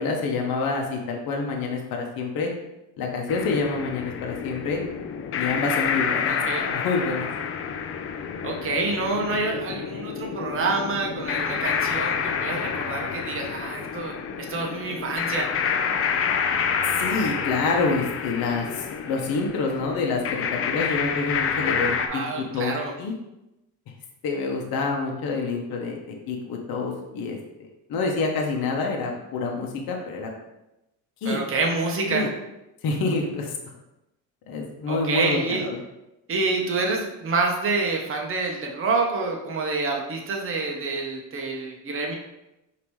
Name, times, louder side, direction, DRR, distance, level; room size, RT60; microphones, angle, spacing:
voice 1, 0.0-2.5 3.0-4.8 5.4-6.3 6.8-7.3 16.8-23.1 24.2-30.3 31.2-31.4 32.1-32.3 32.8-33.5 34.5-35.8, left 4 dB, 55° left, 1 dB, 0.9 m, -27 dB
sound 1, 3.3-22.1, left 6 dB, 35° left, 0.4 m, -28 dB
voice 2, 6.3-6.6 8.4-15.5 22.1-22.9 31.2-32.3 34.9-35.7 36.3-42.1, right 3 dB, 30° right, 1 dB, 0.9 m, -27 dB
5.0 x 2.9 x 3.1 m, 0.93 s
supercardioid pair, 95°, 43 cm